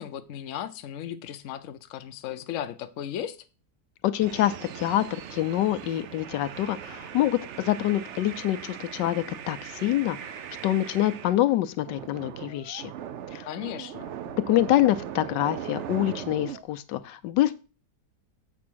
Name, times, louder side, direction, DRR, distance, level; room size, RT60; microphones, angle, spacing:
voice 1, 0.0-3.4 13.5-14.1, left 10 dB, 65° left, 9 dB, 0.8 m, -36 dB
voice 2, 4.0-10.3 10.6-12.9 13.3-13.5 14.5-17.6, left 13 dB, 90° left, 12 dB, 1.3 m, -26 dB
sound 1, 4.2-11.4 11.8-16.6, right 9 dB, 75° right, 0.6 m, -39 dB
7.6 x 3.6 x 6.1 m, 0.33 s
omnidirectional pair, 1.9 m